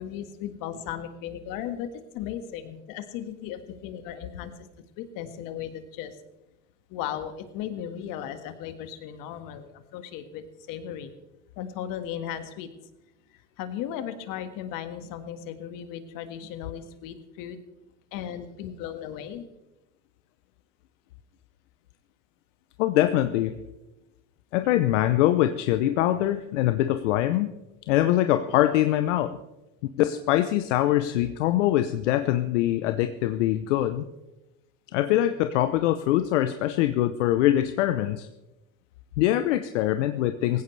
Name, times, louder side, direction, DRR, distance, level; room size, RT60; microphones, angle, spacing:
voice 1, 0.0-4.7 5.0-6.2 6.9-11.1 11.6-12.7 13.3-17.6 18.1-19.4, left 10 dB, 65° left, 9 dB, 1.8 m, -36 dB
voice 2, 22.8-23.5 24.5-27.5 27.9-29.4 30.0-34.0 34.9-38.3 39.2-40.6, left 13 dB, 85° left, 10 dB, 0.8 m, -23 dB
18.5 x 16.0 x 3.3 m, 0.98 s
supercardioid pair, 90°, 35 cm